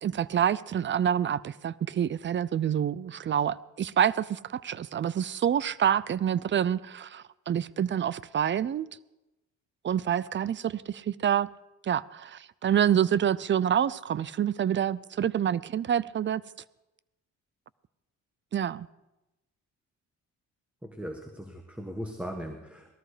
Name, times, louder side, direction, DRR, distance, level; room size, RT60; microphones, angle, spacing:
voice 1, 0.0-8.9 9.8-11.5 11.8-16.4 18.5-18.9, right 9 dB, 40° right, 0.5 m, -27 dB
voice 2, 20.8-22.9, equal, 5° right, 1.6 m, -38 dB
18.5 x 13.5 x 5.0 m
cardioid pair, 90°, 30 cm